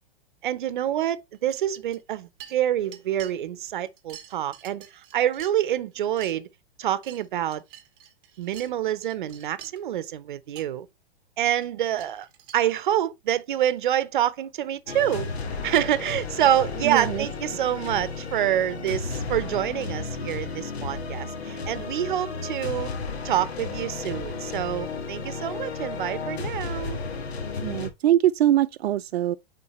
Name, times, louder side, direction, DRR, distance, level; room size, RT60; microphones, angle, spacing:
voice 1, 0.4-6.5 6.8-7.6 8.4-10.9 11.4-12.3 12.5-15.3 15.6-22.9 23.2-27.0, right 11 dB, 50° right, 0.7 m, -27 dB
sound 1, 1.5-2.1 2.4-3.3 3.7-5.8 6.1-6.3 6.8-8.7 9.0-9.8 10.3-10.4 10.6-10.7 11.4-12.6, right 10 dB, 20° right, 0.9 m, -47 dB
sound 2, 14.9-27.9, left 4 dB, 90° left, 1.6 m, -33 dB
voice 2, 16.8-17.3 27.6-29.4, right 12 dB, 80° right, 0.5 m, -22 dB
9.6 x 3.9 x 3.1 m
hypercardioid pair, 175°, 31 cm